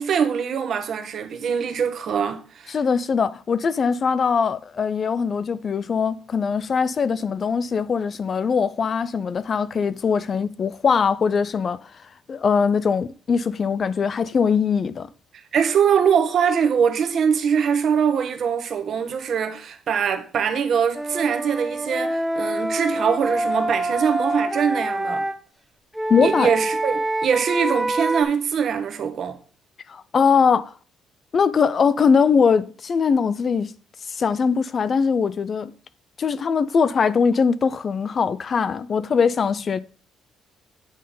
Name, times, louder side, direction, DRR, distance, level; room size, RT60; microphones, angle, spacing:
voice 1, 0.0-2.8 15.5-25.2 26.2-29.4, right 7 dB, 50° right, 1.0 m, -22 dB
voice 2, 2.7-11.8 12.3-15.1 26.1-26.5 29.9-30.7 31.3-33.7 34.1-35.7 36.2-39.8, left 6 dB, 35° left, 0.3 m, -21 dB
Wind instrument woodwind instrument, 20.9-25.4 25.9-28.2, right 1 dB, 5° right, 0.7 m, -26 dB
8.7 x 3.7 x 5.3 m
cardioid pair, 145°, 0 cm